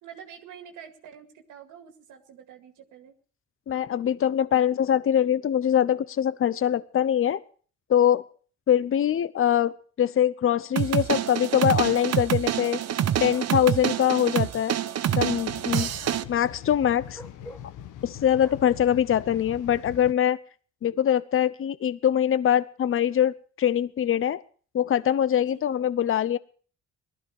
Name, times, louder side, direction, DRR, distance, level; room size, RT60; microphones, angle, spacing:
voice 1, 0.0-3.2 16.0-16.3 25.4-25.8, right 8 dB, 85° right, 5 dB, 2.2 m, -47 dB
voice 2, 3.7-7.4 7.9-8.2 8.7-12.8 13.2-14.7 15.2-15.9 16.3-17.2 18.0-20.4 20.8-24.4 24.7-26.4, left 10 dB, 45° left, 17 dB, 0.8 m, -23 dB
sound 1, 10.8-16.2, right 10 dB, 55° right, 0.9 m, -27 dB
sound 2, 13.3-13.8 17.1-17.7 18.4-18.6, equal, 10° left, 1.9 m, -46 dB
sound 3, 15.1-20.1, left 10 dB, 85° left, 1.3 m, -42 dB
18.5 x 13.5 x 4.8 m, 0.42 s
cardioid pair, 90°, 30 cm